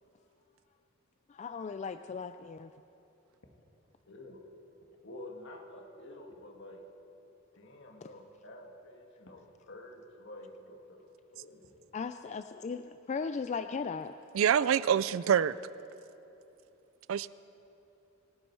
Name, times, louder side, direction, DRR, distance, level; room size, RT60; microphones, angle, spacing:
voice 1, 1.3-2.7 11.9-14.1, left 5 dB, 35° left, 9 dB, 0.3 m, -37 dB
voice 2, 4.1-4.5 5.0-6.8 7.5-11.7, left 1 dB, 60° left, 2 dB, 1.6 m, -49 dB
voice 3, 14.3-15.6 17.1-17.3, right 8 dB, 70° right, 17 dB, 0.4 m, -26 dB
26.0 x 11.0 x 4.5 m, 2.9 s
head